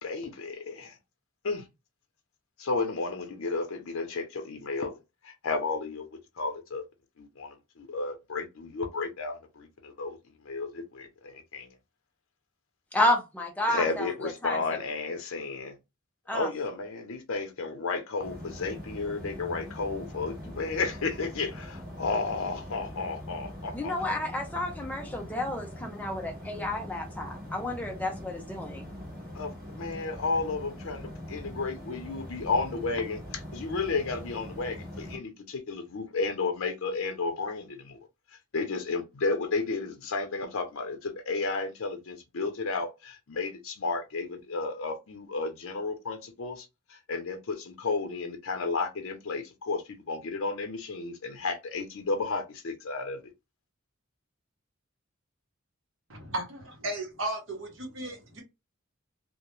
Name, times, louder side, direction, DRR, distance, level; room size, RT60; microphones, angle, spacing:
voice 1, 0.0-1.0 1.4-1.6 2.6-4.9 5.2-6.8 7.2-10.2 10.4-11.7 13.7-15.7 16.3-23.9 29.4-38.0 38.5-53.2, left 3 dB, 80° left, 0.6 m, -32 dB
voice 2, 12.9-14.6 16.3-16.5 23.7-28.9, left 1 dB, 5° left, 0.5 m, -31 dB
sound 1, 18.2-35.2, left 1 dB, 45° right, 1.1 m, -42 dB
voice 3, 56.1-56.4 56.8-58.4, right 1 dB, 65° right, 0.9 m, -34 dB
2.3 x 2.1 x 3.0 m
head